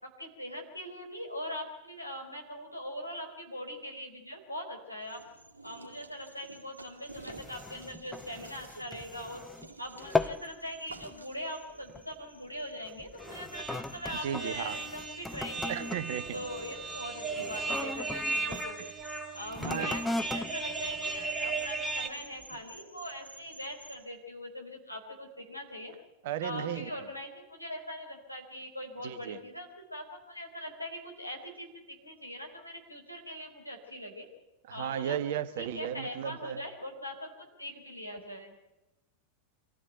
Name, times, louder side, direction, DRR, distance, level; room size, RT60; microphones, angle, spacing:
voice 1, 0.0-5.2 5.6-9.5 9.8-15.8 16.3-18.8 19.3-25.9 26.4-34.3 34.7-35.2 35.6-38.6, left 1 dB, 90° left, 2 dB, 4.2 m, -41 dB
sound 1, 5.0-24.1, right 2 dB, 80° right, 2.2 m, -52 dB
Music Stand Manipulation, 7.1-9.7 10.0-10.5 10.9-11.2 11.9-12.1 12.9-18.7 19.5-21.8 22.4-22.5, left 2 dB, 10° left, 0.7 m, -38 dB
sound 2, 13.2-22.1, right 3 dB, 10° right, 2.5 m, -37 dB
voice 2, 14.2-14.8 15.7-16.4 18.8-18.9 19.6-19.9 26.2-26.9 29.0-29.4 34.7-36.6, right 10 dB, 50° right, 11 dB, 1.6 m, -35 dB
25.5 x 15.0 x 9.3 m, 1.0 s
figure-of-eight pair, 90°, 0 cm